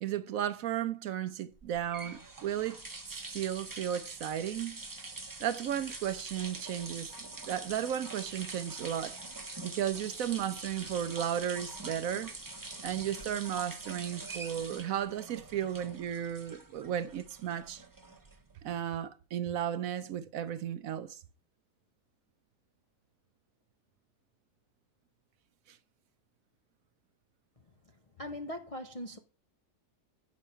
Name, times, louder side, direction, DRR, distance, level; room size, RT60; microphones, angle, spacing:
voice 1, 0.0-2.8 3.3-4.8 5.4-7.1 7.5-9.2 9.6-12.3 12.8-17.8 18.6-21.2 25.7-25.8, right 10 dB, 70° right, 0.9 m, -34 dB
sound 1, 1.6-18.6, right 3 dB, 15° right, 0.7 m, -44 dB
voice 2, 28.2-29.2, left 1 dB, 50° left, 0.4 m, -40 dB
8.7 x 6.2 x 5.5 m
omnidirectional pair, 1.7 m